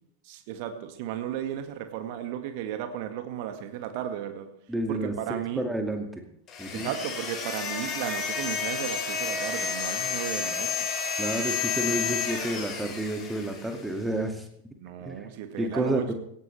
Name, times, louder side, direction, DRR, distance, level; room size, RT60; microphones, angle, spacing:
voice 1, 0.2-4.5 4.9-5.7 6.7-10.9 14.8-16.1, right 10 dB, 45° right, 7 dB, 1.8 m, -34 dB
voice 2, 4.7-6.1 6.6-6.9 11.2-14.5 15.0-15.3 15.6-16.1, right 1 dB, 5° right, 4 dB, 2.2 m, -30 dB
sound 1, 6.5-13.9, left 6 dB, 30° left, 3.7 m, -31 dB
17.5 x 16.5 x 3.4 m, 0.71 s
figure-of-eight pair, 90°, 0 cm